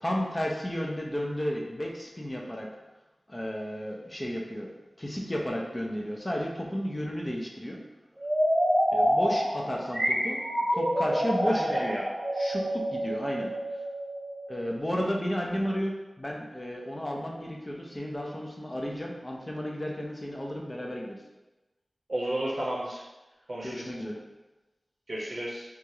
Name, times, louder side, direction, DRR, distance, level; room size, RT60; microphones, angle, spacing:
voice 1, 0.0-2.7 3.3-4.7 5.0-7.8 8.9-10.4 10.7-12.0 12.3-13.5 14.5-21.2 23.6-24.2, equal, 25° left, -1 dB, 0.5 m, -33 dB
sound 1, 8.2-14.9, equal, 25° right, 0.8 m, -27 dB
voice 2, 11.4-12.0 22.1-23.0 23.5-24.0 25.1-25.6, right 1 dB, 60° right, -6 dB, 0.6 m, -33 dB
3.1 x 2.3 x 2.7 m, 1.1 s
wide cardioid pair, 65°, 0 cm